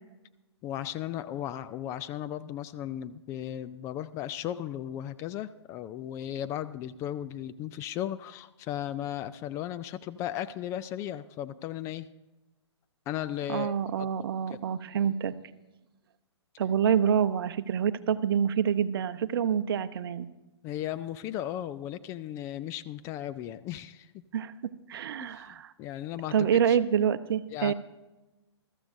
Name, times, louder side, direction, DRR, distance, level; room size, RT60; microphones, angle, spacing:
voice 1, 0.6-12.1 13.1-14.1 14.5-14.6 20.6-24.1 25.2-26.8 27.5-27.7, left 11 dB, 20° left, 12 dB, 0.3 m, -36 dB
voice 2, 13.5-15.3 16.6-20.3 24.3-24.5 24.9-25.7 26.3-27.7, right 8 dB, 55° right, 12 dB, 0.8 m, -27 dB
21.0 x 14.0 x 2.6 m, 1.0 s
figure-of-eight pair, 125°, 15 cm